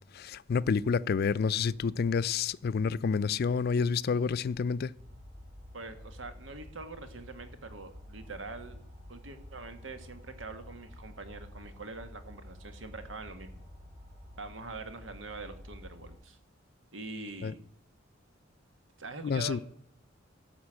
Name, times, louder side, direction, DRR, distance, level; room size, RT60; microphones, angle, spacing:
voice 1, 0.1-4.9 17.4-17.5 19.2-19.6, left 5 dB, 55° left, 0.4 m, -29 dB
sound 1, 5.0-16.2, left 1 dB, 35° right, 4.6 m, -50 dB
voice 2, 5.7-8.8 9.1-13.7 14.4-16.4 16.9-17.6 19.0-19.6, right 3 dB, 80° right, 1.6 m, -44 dB
13.0 x 5.2 x 7.4 m
head